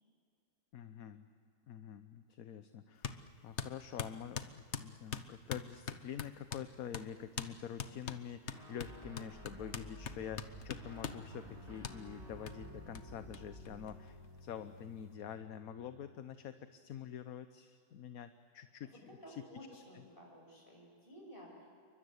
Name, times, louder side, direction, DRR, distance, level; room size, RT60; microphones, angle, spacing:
voice 1, 0.7-1.3 1.7-19.4 19.7-20.0, left 9 dB, 65° left, 10 dB, 1.3 m, -47 dB
sound 1, 3.0-3.2 3.6-6.7 6.9-7.1 7.4-7.5 7.8-11.2 11.8-12.0 12.5-12.6 13.0-13.1 13.3-13.4 13.7-14.4, left 7 dB, 50° left, 1.2 m, -42 dB
Guitar, 8.5-16.2, equal, 40° right, 5.2 m, -54 dB
sound 2, 8.8-14.0, equal, 15° right, 4.4 m, -55 dB
voice 2, 18.8-21.7, equal, 35° left, 0 dB, 7.6 m, -54 dB
28.5 x 24.0 x 8.1 m, 2.4 s
omnidirectional pair, 1.7 m